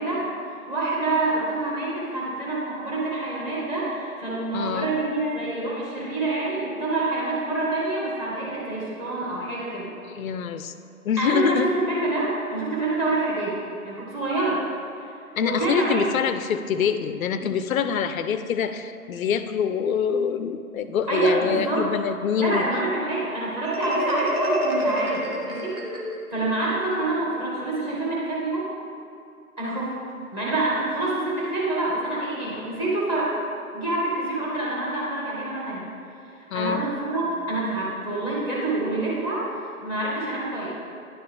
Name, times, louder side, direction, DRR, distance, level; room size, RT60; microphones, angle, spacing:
voice 1, 0.0-9.9 11.2-14.6 15.0-16.1 21.1-21.9 22.3-25.8 26.3-28.7 29.6-30.0 30.3-33.3 33.7-35.9 36.5-40.7, right 2 dB, 15° right, -7 dB, 1.5 m, -27 dB
voice 2, 4.5-4.9 10.2-10.7 11.0-11.7 15.3-22.7 36.5-36.9, left 7 dB, 65° left, 10 dB, 0.5 m, -25 dB
Marimba xylophone, 23.7-26.4, equal, 75° right, 1.5 m, -28 dB
10.5 x 4.4 x 3.4 m, 2.5 s
figure-of-eight pair, 135°, 44 cm